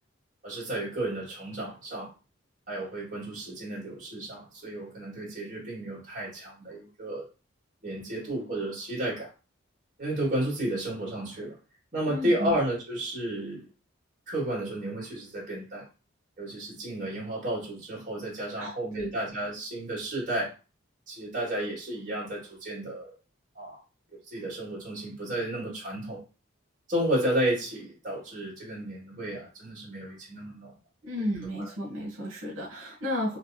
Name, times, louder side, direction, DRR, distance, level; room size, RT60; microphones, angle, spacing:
voice 1, 0.4-2.1 2.7-7.3 7.8-9.3 10.0-11.6 11.9-13.7 14.3-15.9 16.4-20.5 21.1-23.1 23.6-23.8 24.3-26.2 26.9-30.7 31.2-31.3 31.6-31.7, right 1 dB, 40° right, 1.9 m, -32 dB
voice 2, 12.1-12.5 18.6-19.2 31.0-33.4, left 1 dB, 80° right, 1.0 m, -33 dB
3.3 x 2.9 x 2.7 m
head